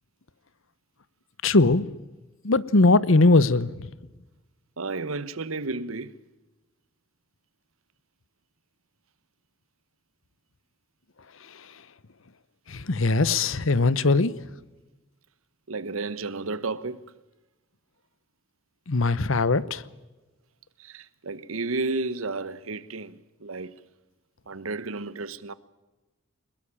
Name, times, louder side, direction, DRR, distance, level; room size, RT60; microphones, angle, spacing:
voice 1, 1.4-1.8 2.4-3.9 12.7-14.3 18.9-19.8, left 3 dB, 75° left, 1.0 m, -20 dB
voice 2, 4.8-6.1 13.2-13.4 15.7-17.1 20.8-23.7 24.5-25.5, right 3 dB, 85° right, 1.1 m, -32 dB
22.5 x 21.0 x 8.8 m
head